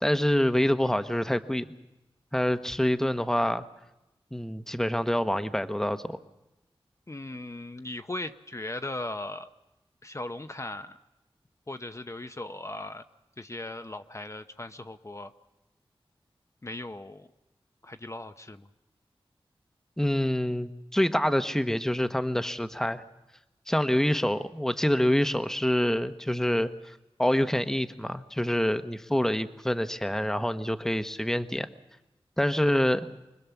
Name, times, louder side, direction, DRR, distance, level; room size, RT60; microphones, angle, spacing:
voice 1, 0.0-1.6 2.3-3.6 4.3-6.2 20.0-23.0 23.7-26.9 27.2-31.7 32.4-33.1, left 1 dB, 5° left, 11 dB, 1.0 m, -26 dB
voice 2, 7.1-9.5 10.0-11.0 11.7-13.0 13.4-15.3 16.6-17.3 17.8-18.7, left 2 dB, 30° left, 8 dB, 0.8 m, -38 dB
25.5 x 20.5 x 7.1 m, 0.97 s
wide cardioid pair, 60°, 10 cm